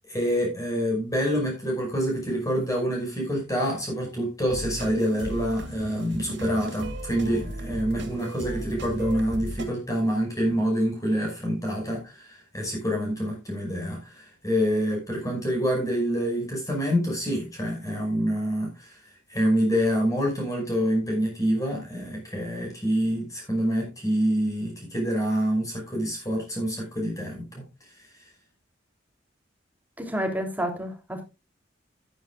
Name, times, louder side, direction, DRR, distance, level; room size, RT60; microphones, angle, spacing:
voice 1, 0.1-19.0 19.3-27.5, equal, 15° left, 5.5 m, -26 dB
sound 1, 4.5-9.7, right 1 dB, 60° right, 2.6 m, -36 dB
voice 2, 30.0-31.2, equal, 10° right, 3.0 m, -29 dB
14.0 x 11.0 x 2.4 m
head